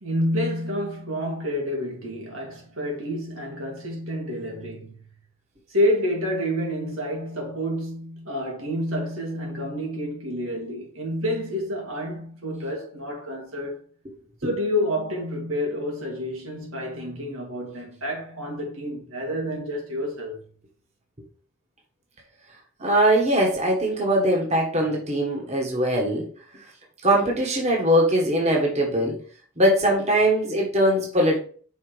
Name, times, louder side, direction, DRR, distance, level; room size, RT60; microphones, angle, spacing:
voice 1, 0.0-5.0 5.7-13.8 14.4-20.4, equal, 85° right, 2.3 m, -29 dB
voice 2, 22.8-26.2 27.0-29.1 29.6-31.4, right 1 dB, 35° right, 1.5 m, -21 dB
5.8 x 4.1 x 4.7 m
head